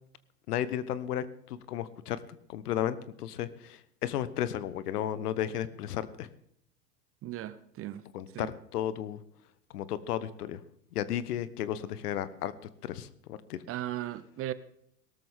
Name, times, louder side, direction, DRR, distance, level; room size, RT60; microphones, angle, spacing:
voice 1, 0.5-2.2 2.5-6.3 8.1-9.2 9.7-10.6 10.9-12.5 12.8-13.6, left 11 dB, 65° left, 1.2 m, -34 dB
voice 2, 7.2-8.0 8.3-8.5 13.7-14.5, right 13 dB, 25° right, 0.7 m, -37 dB
18.0 x 13.0 x 3.7 m
hypercardioid pair, 100°, 49 cm